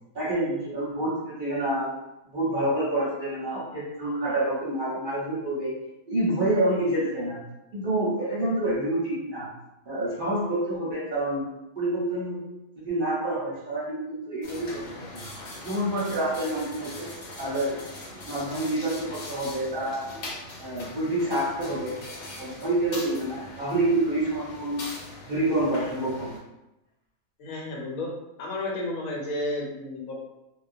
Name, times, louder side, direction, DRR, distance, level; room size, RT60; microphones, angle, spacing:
voice 1, 0.1-1.9 2.3-5.7 6.1-7.4 7.7-9.5 9.9-11.5 11.8-12.4 12.8-15.2 15.6-17.1 17.4-17.8 18.2-20.1 20.6-22.0 22.4-24.8 25.3-26.3, right 1 dB, 45° right, -7 dB, 0.8 m, -27 dB
sound 1, 14.4-26.4, left 2 dB, 65° left, 0.9 m, -41 dB
voice 2, 27.4-28.1 28.4-30.2, left 2 dB, 85° left, -2 dB, 1.1 m, -32 dB
2.3 x 2.1 x 2.5 m, 0.93 s
omnidirectional pair, 1.4 m